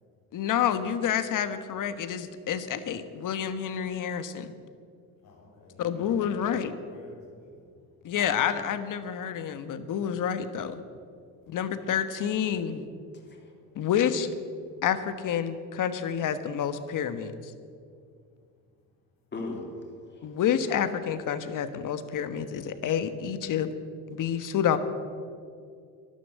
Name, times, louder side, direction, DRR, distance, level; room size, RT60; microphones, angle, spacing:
voice 1, 0.3-4.5 5.8-6.7 8.0-10.8 11.5-12.9 13.7-14.3 14.8-17.5 20.2-23.7 24.1-24.8, left 8 dB, 55° left, 11 dB, 1.3 m, -28 dB
voice 2, 5.2-7.7 8.0-8.2 11.1-11.6 13.1-13.9 14.7-14.8, left 2 dB, 85° left, -8 dB, 4.1 m, -54 dB
voice 3, 13.1-13.5 19.3-20.4, left 2 dB, 30° left, 1 dB, 3.2 m, -39 dB
12.0 x 11.0 x 8.2 m, 2.3 s
supercardioid pair, 95°, 38 cm